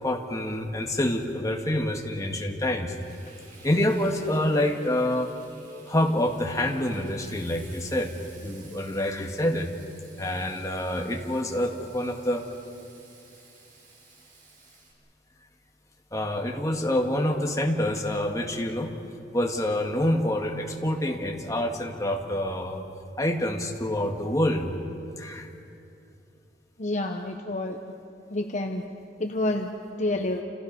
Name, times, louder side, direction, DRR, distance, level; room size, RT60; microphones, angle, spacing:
voice 1, 0.0-2.9 3.6-5.3 5.9-8.1 8.4-9.7 10.2-12.5 16.1-18.9 19.3-22.8 23.2-24.7 25.2-25.5, left 1 dB, 20° left, 1 dB, 2.0 m, -27 dB
Frying (food), 3.0-14.9, right 3 dB, 50° right, 6.0 m, -54 dB
voice 2, 26.8-27.8 28.3-28.8 29.2-29.7 30.0-30.4, left 2 dB, 40° left, 3 dB, 1.2 m, -28 dB
28.5 x 28.5 x 5.5 m, 2.7 s
head